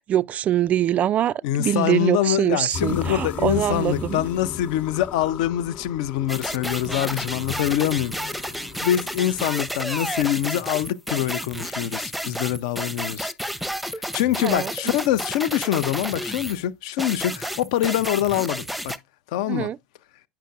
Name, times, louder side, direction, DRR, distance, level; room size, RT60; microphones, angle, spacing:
voice 1, 0.0-4.2 14.4-14.9 19.5-19.8, right 11 dB, 35° right, 0.3 m, -24 dB
voice 2, 1.4-8.5 8.8-13.3 14.1-18.9 19.3-19.7, left 12 dB, 60° left, 0.5 m, -24 dB
sound 1, 2.7-9.8, left 6 dB, 35° left, 0.8 m, -36 dB
sound 2, 6.3-16.6 17.0-19.0, equal, ahead, 0.6 m, -31 dB
9.9 x 5.7 x 2.4 m
figure-of-eight pair, 70°, 4 cm